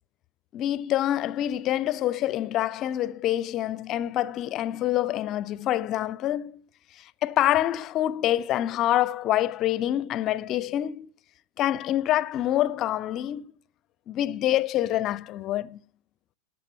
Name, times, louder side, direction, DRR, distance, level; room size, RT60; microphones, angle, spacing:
voice 1, 0.5-6.6 7.0-11.1 11.6-13.5 14.1-15.8, left 13 dB, 35° left, 0.4 m, -26 dB
12.5 x 6.2 x 5.6 m
figure-of-eight pair, 90°, 0 cm